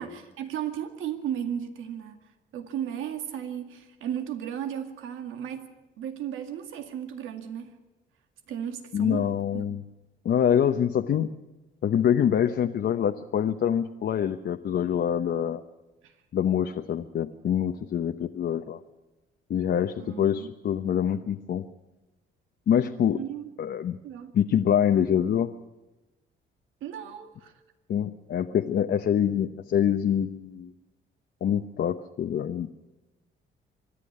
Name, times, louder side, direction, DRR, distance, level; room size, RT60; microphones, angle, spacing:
voice 1, 0.0-2.2 2.5-5.7 6.0-7.7 8.5-9.8 16.0-16.1 20.0-20.5 23.1-23.5 24.0-24.3 26.8-27.5, right 9 dB, 85° right, 7 dB, 2.1 m, -35 dB
voice 2, 8.9-9.8 10.2-11.3 11.8-15.6 16.3-18.8 19.5-21.6 22.7-23.2 23.6-24.0 24.3-25.5 27.9-30.7 31.4-32.8, left 9 dB, 60° left, 6 dB, 1.0 m, -25 dB
25.5 x 11.5 x 10.0 m, 1.0 s
cardioid pair, 90°, 20 cm